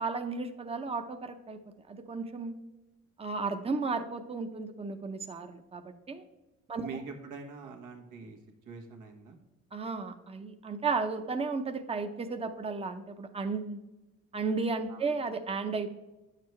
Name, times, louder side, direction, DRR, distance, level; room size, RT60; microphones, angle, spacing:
voice 1, 0.0-1.6 1.9-2.6 3.2-6.2 6.7-6.9 9.7-13.8 14.3-15.9, right 4 dB, 20° right, 7 dB, 0.7 m, -34 dB
voice 2, 6.7-8.4 8.6-9.4 14.9-15.1, right 5 dB, 85° right, 3 dB, 1.3 m, -44 dB
9.3 x 6.7 x 3.2 m, 1.1 s
cardioid pair, 90°, 30 cm